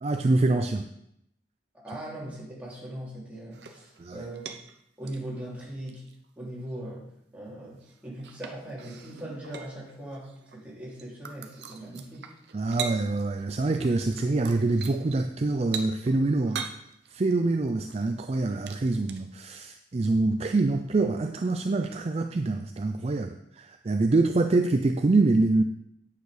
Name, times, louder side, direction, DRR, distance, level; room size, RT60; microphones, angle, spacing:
voice 1, 0.0-0.9 4.0-4.2 12.5-16.7 17.1-25.6, right 2 dB, 35° right, 6 dB, 0.4 m, -25 dB
voice 2, 1.7-4.5 5.0-6.0 6.4-7.1 7.3-12.3, right 1 dB, 10° right, -6 dB, 3.1 m, -40 dB
sound 1, 3.5-4.8 5.1-6.3 6.7-6.8 7.8-10.6 10.9-13.5 13.7-19.7 20.5-20.6, right 6 dB, 70° right, 0.9 m, -42 dB
9.2 x 6.7 x 5.0 m, 0.76 s
head